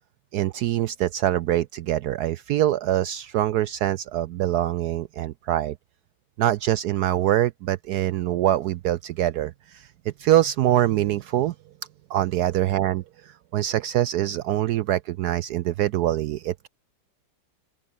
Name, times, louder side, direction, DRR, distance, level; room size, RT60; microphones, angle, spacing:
voice 1, 0.3-5.8 6.4-9.9 10.2-11.5 12.1-16.7, right 13 dB, 75° right, 0.9 m, -24 dB
open air
omnidirectional pair, 2.1 m